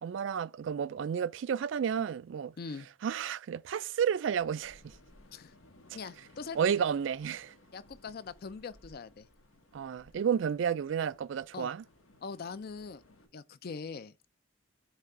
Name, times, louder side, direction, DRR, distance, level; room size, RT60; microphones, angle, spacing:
voice 1, 0.0-2.5 3.0-4.9 6.6-7.5 9.7-11.8, right 7 dB, 60° right, 0.3 m, -31 dB
voice 2, 2.6-2.9 5.3-5.5 5.9-6.7 7.7-9.3 11.5-11.7 12.2-13.0 13.3-14.1, left 5 dB, 50° left, 0.4 m, -42 dB
sound 1, 4.4-13.3, left 1 dB, 90° left, 1.3 m, -60 dB
7.2 x 3.3 x 4.1 m
head